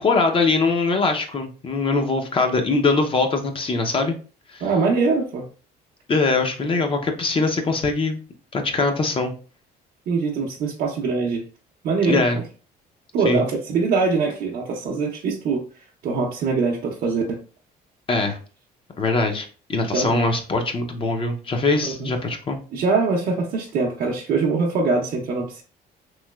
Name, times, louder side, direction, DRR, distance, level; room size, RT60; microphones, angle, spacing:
voice 1, 0.0-4.2 4.5-4.7 6.1-8.2 8.5-9.3 12.0-12.4 13.3-13.4 18.1-18.4 19.0-22.6, left 3 dB, 30° left, 5 dB, 0.5 m, -22 dB
voice 2, 4.6-5.4 10.1-11.4 11.8-12.2 13.1-15.6 16.0-17.4 19.9-20.2 22.0-22.1 22.7-25.6, right 4 dB, 60° right, -1 dB, 0.6 m, -23 dB
3.0 x 2.8 x 2.2 m, 0.37 s
cardioid pair, 110°, 17 cm